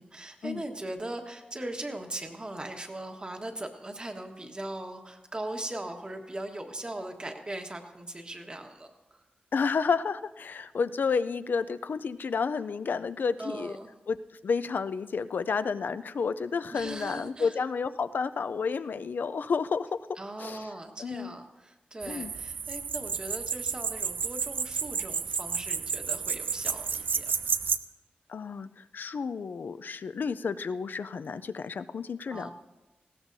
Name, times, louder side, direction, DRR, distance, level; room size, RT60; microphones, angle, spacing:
voice 1, 0.0-9.2 13.4-13.9 16.7-17.6 20.2-27.5 32.3-32.5, right 1 dB, 30° right, 4 dB, 1.4 m, -39 dB
voice 2, 9.5-13.8 14.1-14.2 14.4-20.0 20.4-20.7 21.0-21.4 22.1-22.3 28.3-32.5, left 5 dB, 75° left, 13 dB, 0.4 m, -31 dB
sound 1, 22.0-27.8, right 6 dB, 80° right, 0.5 m, -31 dB
19.0 x 16.5 x 2.7 m, 1.1 s
wide cardioid pair, 105°, 3 cm